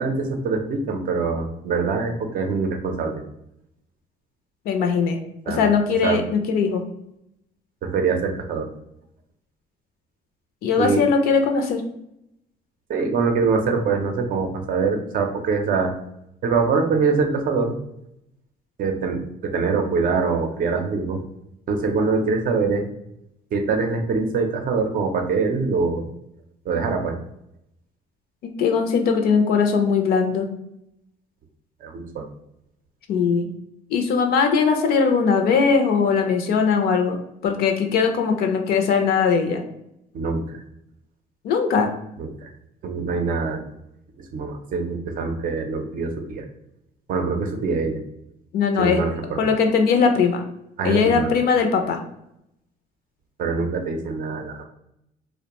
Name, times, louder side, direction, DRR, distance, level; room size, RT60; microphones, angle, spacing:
voice 1, 0.0-3.2 5.5-5.6 6.0-6.2 7.8-8.7 10.8-11.0 12.9-15.9 16.4-17.7 18.8-21.2 21.7-22.8 23.5-26.0 26.7-27.2 31.8-32.3 40.1-40.6 42.2-42.5 42.8-43.6 44.2-46.4 47.1-48.0 48.8-49.5 50.8-51.3 53.4-54.7, right 4 dB, 55° right, 5 dB, 0.5 m, -24 dB
voice 2, 4.7-5.2 5.5-6.8 10.6-11.8 28.4-30.5 33.1-33.5 33.9-39.6 41.4-41.9 48.5-49.0 49.4-50.4 50.8-52.0, left 5 dB, 65° left, 5 dB, 0.4 m, -20 dB
2.5 x 2.1 x 2.9 m, 0.81 s
cardioid pair, 110°, 17 cm